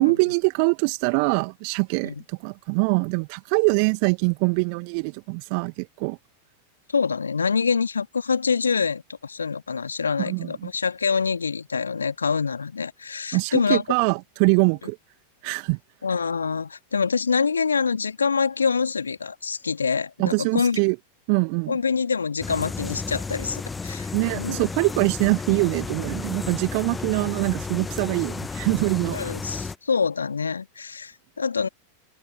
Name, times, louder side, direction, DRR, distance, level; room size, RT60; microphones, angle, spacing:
voice 1, 0.0-6.2 10.3-10.7 13.3-15.0 15.4-15.8 20.2-21.0 21.3-21.8 24.1-29.2, right 40 dB or more, 45° right, 1.9 m, -23 dB
voice 2, 6.9-13.8 16.0-20.8 21.7-24.6 29.1-31.7, left 5 dB, 75° left, 2.4 m, -25 dB
sound 1, 22.4-29.8, left 4 dB, 15° left, 1.2 m, -33 dB
figure-of-eight pair, 90°, 0 cm